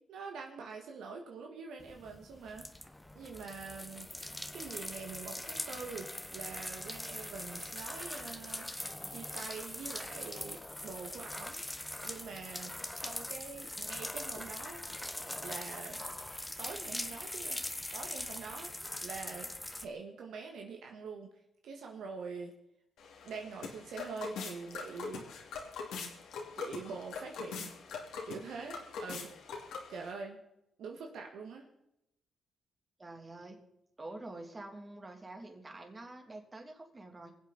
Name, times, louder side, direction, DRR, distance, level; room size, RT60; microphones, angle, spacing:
voice 1, 0.1-2.9 3.1-8.7 9.1-11.6 12.0-12.7 13.0-14.8 15.4-16.0 16.6-17.6 17.9-18.7 19.0-19.5 19.8-21.3 21.6-22.5 23.2-25.2 26.5-27.7 28.2-29.3 29.9-30.4 30.8-31.7, right 5 dB, 80° right, 2 dB, 1.7 m, -45 dB
sound 1, 1.8-19.9, left 1 dB, 10° left, 1.2 m, -42 dB
sound 2, 23.0-30.1, left 5 dB, 85° left, 2.4 m, -43 dB
voice 2, 33.0-33.6 34.0-37.3, right 2 dB, 30° right, 3 dB, 2.9 m, -47 dB
24.5 x 8.1 x 4.1 m, 0.83 s
cardioid pair, 65°, 0 cm